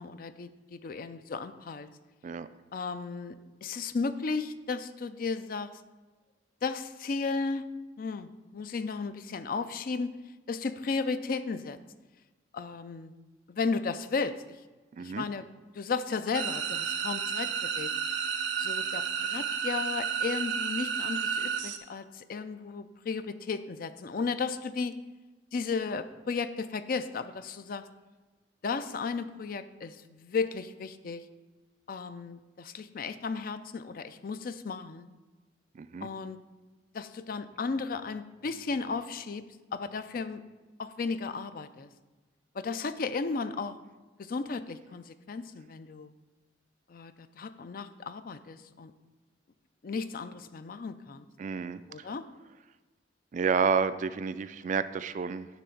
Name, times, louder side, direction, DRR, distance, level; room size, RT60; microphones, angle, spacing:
voice 1, 0.0-1.9 2.7-3.3 3.6-5.7 6.6-7.6 8.0-10.1 10.5-11.8 12.5-13.1 13.5-14.4 15.0-15.5 15.7-17.9 18.6-24.9 25.5-27.8 28.6-31.2 31.9-35.1 36.0-36.4 36.9-39.4 39.7-40.4 40.8-41.9 42.5-43.8 44.2-46.1 46.9-48.9 49.8-51.2 51.9-52.2, left 4 dB, 50° left, 12 dB, 0.4 m, -34 dB
sound 1, 16.3-21.8, right 7 dB, 90° right, 0.7 m, -32 dB
voice 2, 35.8-36.1 51.4-51.8 53.3-55.5, right 5 dB, 45° right, 13 dB, 0.3 m, -30 dB
10.0 x 3.4 x 7.0 m, 1.2 s
head